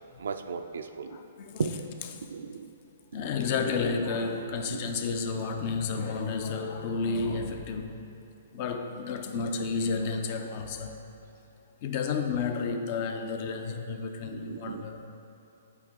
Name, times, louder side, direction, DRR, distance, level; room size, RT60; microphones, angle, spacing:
voice 1, 0.2-1.2 1.6-1.8 2.3-2.7 4.6-4.8 14.3-14.8, right 5 dB, 80° right, 7 dB, 0.3 m, -35 dB
voice 2, 1.1-1.7 2.1-2.3 3.1-7.9 8.5-11.0 11.8-15.1, left 4 dB, 45° left, 6 dB, 0.5 m, -31 dB
8.3 x 4.5 x 3.7 m, 2.8 s
hypercardioid pair, 145°, 0 cm